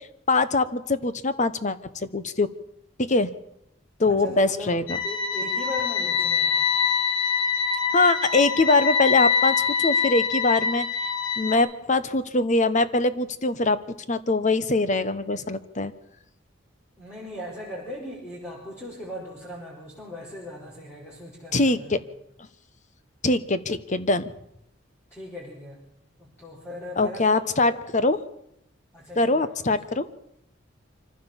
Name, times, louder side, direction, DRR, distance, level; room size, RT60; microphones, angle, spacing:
voice 1, 0.0-2.5 3.0-3.3 4.0-4.8 7.9-10.9 11.4-13.8 14.1-15.9 21.5-22.0 23.2-24.3 27.0-28.2 29.2-30.1, left 3 dB, 40° left, 14 dB, 1.1 m, -23 dB
voice 2, 4.0-6.7 17.0-22.0 25.1-25.8 26.2-27.8 28.9-30.0, left 1 dB, 10° left, -4 dB, 4.6 m, -39 dB
sound 1, 4.9-11.6, left 6 dB, 90° left, 4.3 m, -24 dB
25.0 x 15.0 x 7.3 m, 0.79 s
head